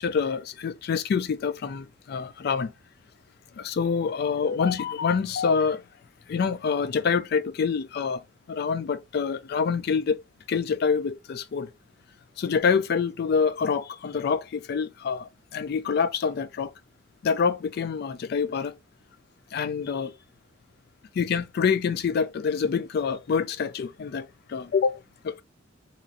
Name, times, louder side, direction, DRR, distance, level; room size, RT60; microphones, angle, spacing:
voice 1, 0.0-2.7 3.5-5.8 6.3-8.2 8.5-10.2 10.5-11.7 12.4-16.7 17.2-18.7 19.5-20.1 21.1-25.4, left 6 dB, 55° left, 0.3 m, -26 dB
3.0 x 2.5 x 2.5 m
head